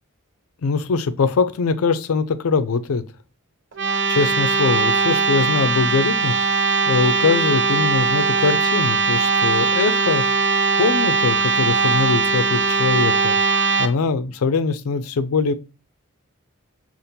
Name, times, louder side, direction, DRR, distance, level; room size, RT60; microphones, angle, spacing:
voice 1, 0.6-3.0 4.1-6.4 6.9-10.5 10.8-15.5, left 4 dB, 90° left, 0.4 m, -22 dB
sound 1, 3.7-13.9, right 4 dB, 55° right, 0.6 m, -20 dB
5.1 x 2.5 x 2.7 m
head